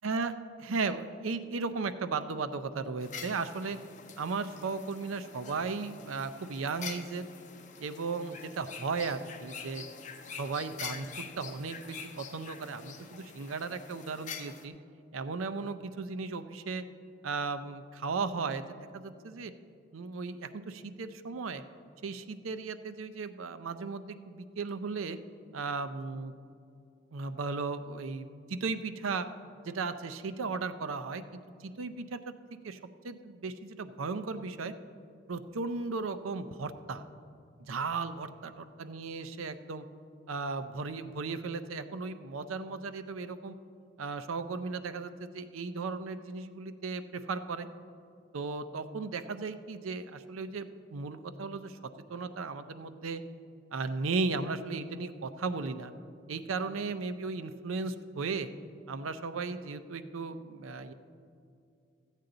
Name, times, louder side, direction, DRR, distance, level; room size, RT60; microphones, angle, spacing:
voice 1, 0.0-0.3 0.6-3.8 4.2-7.3 7.8-9.8 10.4-14.7 15.1-16.8 17.2-19.5 19.9-21.6 22.0-25.2 25.5-26.3 27.1-29.3 29.6-32.3 32.6-32.8 33.0-34.7 35.3-37.0 37.7-39.9 40.3-43.5 44.0-47.7 48.3-51.8 52.1-53.2 53.7-55.9 56.3-58.5 58.9-60.9, right 4 dB, 85° right, 11 dB, 0.5 m, -36 dB
sound 1, 3.0-14.6, left 6 dB, 40° left, 0.6 m, -46 dB
14.5 x 8.3 x 3.8 m, 2.4 s
head